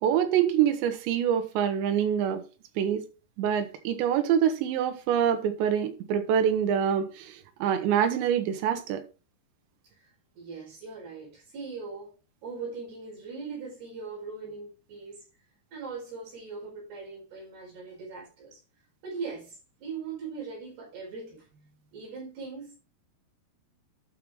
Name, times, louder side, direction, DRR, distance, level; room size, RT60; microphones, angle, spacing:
voice 1, 0.0-2.4 2.8-3.0 3.4-9.0, right 9 dB, 85° right, 3.3 m, -25 dB
voice 2, 10.4-12.1 12.4-15.2 15.7-18.6 19.0-22.8, right 4 dB, 60° right, 6.5 m, -40 dB
11.5 x 5.4 x 3.7 m
omnidirectional pair, 5.2 m